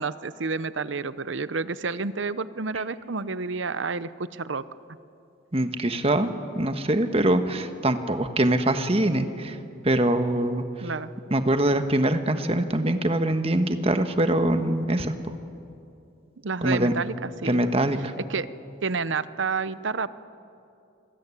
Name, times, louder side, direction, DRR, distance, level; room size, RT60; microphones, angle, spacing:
voice 1, 0.0-4.6 10.8-11.1 16.4-17.6 18.2-18.5 18.8-20.1, right 4 dB, 75° right, 15 dB, 0.8 m, -29 dB
voice 2, 5.5-9.6 9.8-10.6 11.3-15.1 16.6-16.9 17.4-18.1, right 1 dB, 30° right, 8 dB, 1.4 m, -23 dB
27.0 x 21.0 x 9.9 m, 2.6 s
head